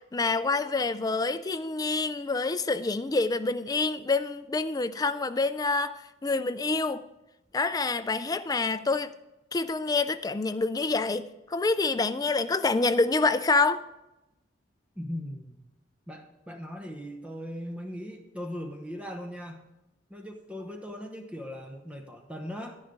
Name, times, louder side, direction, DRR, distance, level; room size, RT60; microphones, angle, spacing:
voice 1, 0.1-7.0 7.5-9.1 9.5-13.8, left 3 dB, 20° left, 0.4 m, -27 dB
voice 2, 15.0-15.6 16.1-19.6 20.1-22.8, equal, 5° right, 0.9 m, -39 dB
11.0 x 10.5 x 3.7 m
head